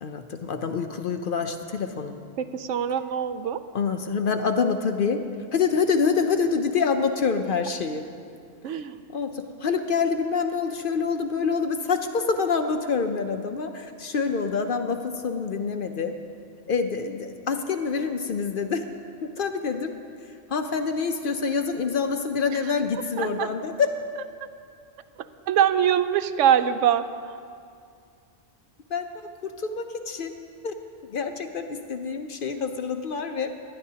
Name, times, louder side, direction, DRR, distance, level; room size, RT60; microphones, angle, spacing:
voice 1, 0.0-2.2 3.7-5.2 5.5-8.1 8.7-8.8 9.1-16.2 16.7-18.9 19.2-19.9 20.2-23.9 28.9-29.1 29.4-30.3 30.6-30.7 31.1-33.5, left 5 dB, 55° left, 7 dB, 0.7 m, -26 dB
voice 2, 2.4-3.6 8.6-9.0 23.2-23.5 25.5-27.4, right 9 dB, 80° right, 12 dB, 0.9 m, -23 dB
19.0 x 11.5 x 2.8 m, 2.3 s
omnidirectional pair, 1.2 m